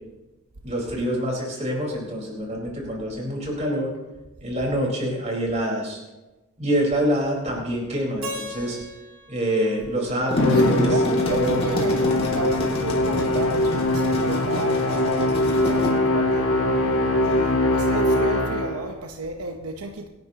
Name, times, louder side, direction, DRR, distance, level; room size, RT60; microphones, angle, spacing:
voice 1, 0.6-3.9 4.4-6.0 6.6-8.8 9.3-11.6, equal, 30° right, -2 dB, 4.5 m, -26 dB
Keyboard (musical), 8.2-11.2, left 1 dB, 60° right, 2.4 m, -39 dB
sound 1, 10.1-15.9, equal, 25° left, 2.6 m, -30 dB
Musical instrument, 10.4-18.9, left 1 dB, 65° left, 1.6 m, -22 dB
voice 2, 10.4-16.6 17.2-20.1, right 2 dB, 80° right, 4 dB, 1.0 m, -32 dB
26.0 x 11.0 x 3.0 m, 1.1 s
head